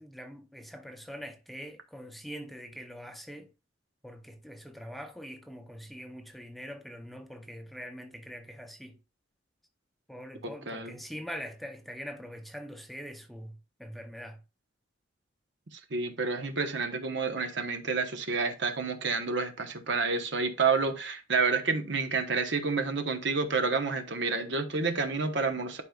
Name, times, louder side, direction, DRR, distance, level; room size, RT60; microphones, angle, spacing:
voice 1, 0.0-3.5 4.0-8.9 10.1-14.4, equal, ahead, 0.7 m, -43 dB
voice 2, 10.4-10.9 15.7-25.8, right 4 dB, 65° right, 1.1 m, -29 dB
11.0 x 5.1 x 2.4 m
head